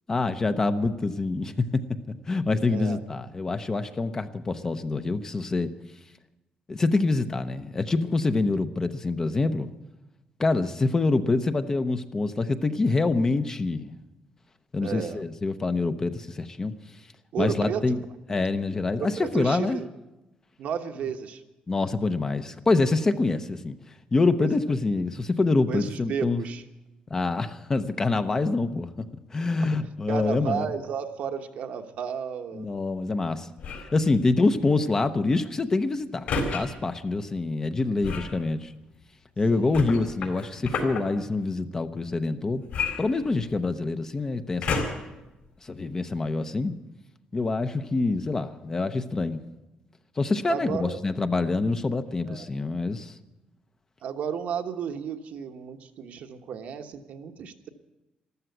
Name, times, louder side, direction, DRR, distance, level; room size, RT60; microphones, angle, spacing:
voice 1, 0.1-5.7 6.7-9.7 10.4-13.9 14.7-16.7 17.4-18.0 18.3-19.8 21.7-23.7 24.1-26.4 27.1-29.1 29.3-30.6 32.5-33.5 33.9-38.7 39.4-42.6 43.0-44.8 45.6-46.7 47.3-49.4 50.2-53.1, left 3 dB, 20° left, 10 dB, 0.7 m, -26 dB
voice 2, 2.7-3.0 14.8-15.2 17.3-18.0 19.0-19.9 20.6-21.4 24.4-24.5 25.7-26.6 29.6-29.8 30.1-32.7 39.5-39.8 50.5-51.0 52.3-52.5 54.0-57.7, right 7 dB, 65° right, 5 dB, 1.2 m, -33 dB
sound 1, 33.6-34.0 36.3-36.6 38.0-38.4 39.7-41.0 42.7-43.7 44.6-45.1 45.8-45.9, left 4 dB, 70° left, 3.9 m, -30 dB
14.0 x 13.0 x 8.0 m, 1.0 s
cardioid pair, 155°, 3 cm